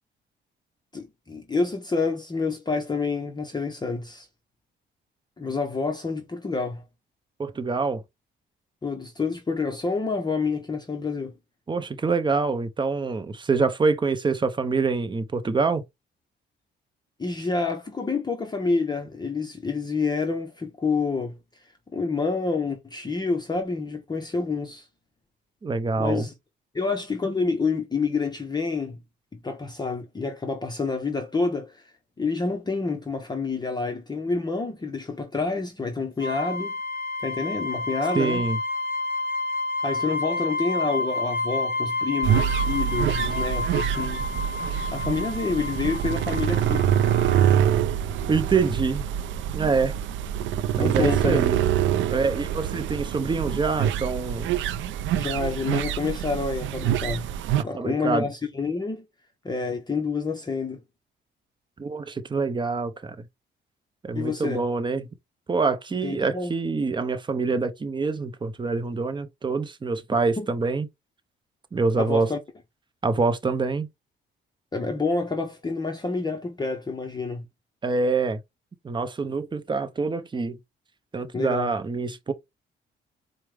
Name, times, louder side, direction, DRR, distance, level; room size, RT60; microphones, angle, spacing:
voice 1, 0.9-4.3 5.4-6.8 8.8-11.3 17.2-21.4 21.9-24.9 26.0-26.3 26.7-29.0 29.3-31.9 32.2-36.7 37.2-38.4 39.8-44.3 44.9-46.9 50.8-51.4 55.1-57.3 57.6-59.1 59.4-60.8 64.1-64.7 66.0-66.5 70.4-70.5 72.0-72.4 74.7-77.4 81.3-81.7, left 4 dB, 20° left, 0.7 m, -28 dB
voice 2, 7.4-8.0 11.7-15.8 25.6-26.3 38.1-38.6 48.3-49.1 49.5-50.0 50.8-51.6 52.1-54.5 57.7-58.3 61.8-63.3 64.0-65.1 65.5-70.9 71.7-72.3 73.0-73.9 77.8-78.4 78.8-80.6 81.1-82.3, right 4 dB, 25° right, 0.7 m, -25 dB
sound 1, 36.2-47.6, left 2 dB, 50° left, 0.9 m, -30 dB
sound 2, 42.2-57.6, right 10 dB, 75° right, 0.4 m, -25 dB
4.6 x 2.1 x 3.3 m
cardioid pair, 90°, 20 cm